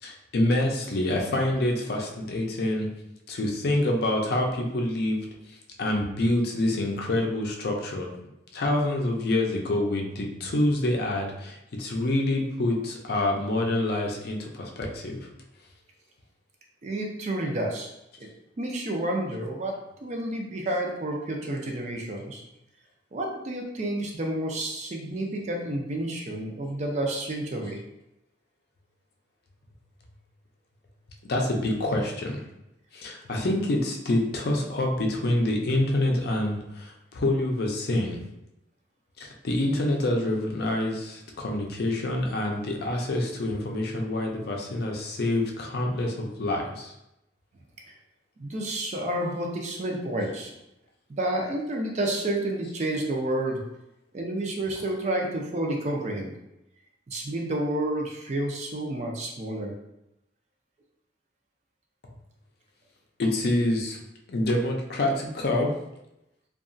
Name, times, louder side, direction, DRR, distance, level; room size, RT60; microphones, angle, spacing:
voice 1, 0.0-2.9 3.3-5.2 5.8-8.1 8.5-15.2 31.3-32.4 32.9-38.2 39.2-46.9 63.2-64.0 64.3-65.7, left 1 dB, 55° left, 1 dB, 0.5 m, -26 dB
voice 2, 16.8-17.9 18.2-18.3 18.6-22.4 23.1-27.8 47.9-48.0 48.4-50.6 51.1-53.6 54.1-56.3 57.1-59.7, right 1 dB, 40° right, 1 dB, 0.4 m, -30 dB
2.8 x 2.3 x 2.5 m, 0.88 s
head